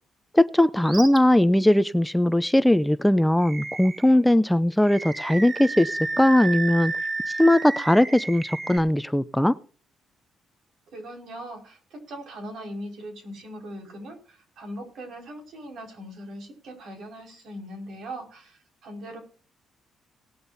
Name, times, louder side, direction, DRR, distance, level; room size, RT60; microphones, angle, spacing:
voice 1, 0.3-6.9 7.4-9.5, left 1 dB, 5° left, 13 dB, 0.6 m, -19 dB
Animal, 0.8-1.2 1.7-1.8 3.4-4.2 4.8-8.8, right 3 dB, 40° right, 2.1 m, -32 dB
voice 2, 10.9-19.2, right 1 dB, 70° right, 3 dB, 5.4 m, -40 dB
19.0 x 12.0 x 2.7 m, 0.41 s
cardioid pair, 90°, 0 cm